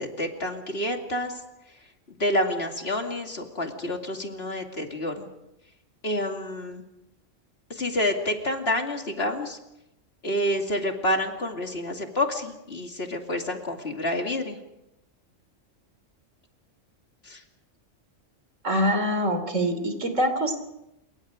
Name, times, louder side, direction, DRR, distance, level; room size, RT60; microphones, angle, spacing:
voice 1, 0.0-1.4 2.1-5.3 6.0-6.8 7.7-9.6 10.2-14.6 17.2-17.4, left 1 dB, 50° left, 3 dB, 2.7 m, -28 dB
voice 2, 18.6-20.6, equal, 80° right, 8 dB, 3.7 m, -24 dB
27.5 x 23.5 x 5.1 m, 0.88 s
omnidirectional pair, 1.3 m